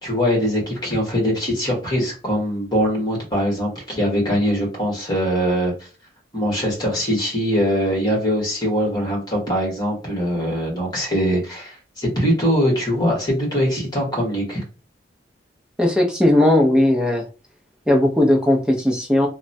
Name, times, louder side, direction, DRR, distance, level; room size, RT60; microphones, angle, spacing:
voice 1, 0.0-5.7 6.3-14.6, equal, 25° left, -2 dB, 1.4 m, -22 dB
voice 2, 15.8-17.2 17.9-19.3, left 1 dB, 5° right, 1 dB, 0.6 m, -17 dB
3.0 x 2.2 x 2.6 m, 0.34 s
head